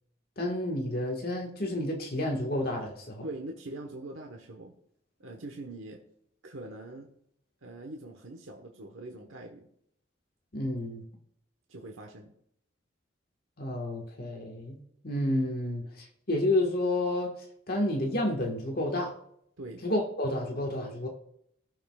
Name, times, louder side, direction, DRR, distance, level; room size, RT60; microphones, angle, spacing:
voice 1, 0.4-3.3 10.5-11.0 13.6-17.3 17.7-19.1 19.8-21.1, left 1 dB, 50° left, 1 dB, 1.6 m, -30 dB
voice 2, 3.2-4.7 5.2-6.0 6.4-7.1 7.6-9.7 11.7-12.3 19.6-19.8, right 2 dB, 85° right, 2 dB, 1.2 m, -42 dB
19.0 x 6.5 x 2.4 m, 0.71 s
head